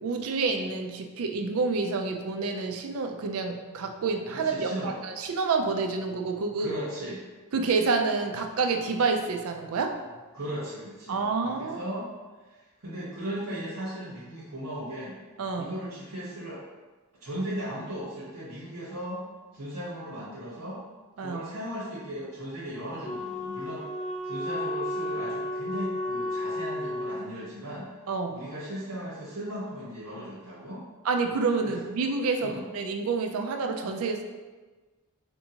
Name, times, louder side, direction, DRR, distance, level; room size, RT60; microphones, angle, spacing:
voice 1, 0.0-6.7 7.5-9.9 11.1-11.8 15.4-15.8 21.2-21.5 28.1-28.4 31.0-34.2, right 4 dB, 70° right, 4 dB, 0.4 m, -28 dB
voice 2, 4.3-5.0 6.6-7.2 10.3-12.1 12.4-15.2 15.6-16.6 17.2-19.2 19.5-20.8 21.2-27.9 28.3-30.8 31.6-31.8 32.4-32.6, equal, 85° right, -9 dB, 1.1 m, -37 dB
Wind instrument woodwind instrument, 23.0-27.3, left 1 dB, 30° left, 0.3 m, -32 dB
4.4 x 2.8 x 2.8 m, 1.3 s
head